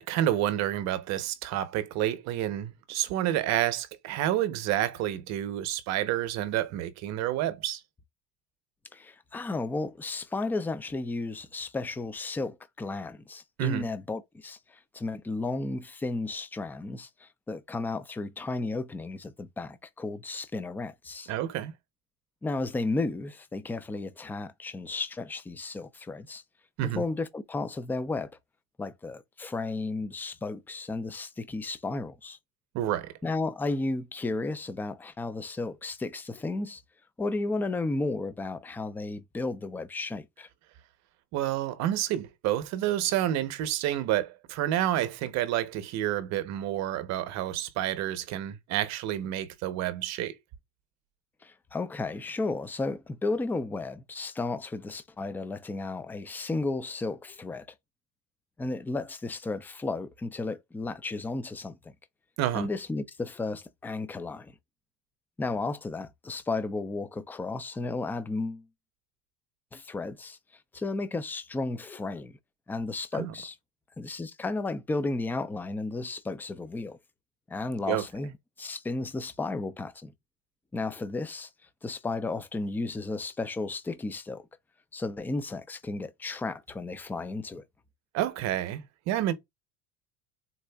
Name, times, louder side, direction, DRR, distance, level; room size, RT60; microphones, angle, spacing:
voice 1, 0.0-7.8 13.6-13.8 21.3-21.7 26.8-27.1 32.7-33.1 41.3-50.3 62.4-62.7 73.1-73.3 77.9-78.0 88.1-89.3, right 12 dB, 55° right, 0.8 m, -29 dB
voice 2, 8.9-14.6 14.9-21.3 22.4-26.4 26.8-28.3 28.8-32.4 33.2-36.8 37.2-40.5 51.4-57.7 58.6-61.9 62.5-64.5 65.4-68.7 69.7-70.4 70.7-72.3 72.7-73.6 74.0-77.0 77.5-78.3 78.6-80.1 80.7-81.5 81.8-84.5 84.9-87.6, left 3 dB, 5° left, 0.3 m, -33 dB
4.1 x 2.4 x 2.2 m
supercardioid pair, 115°, 32 cm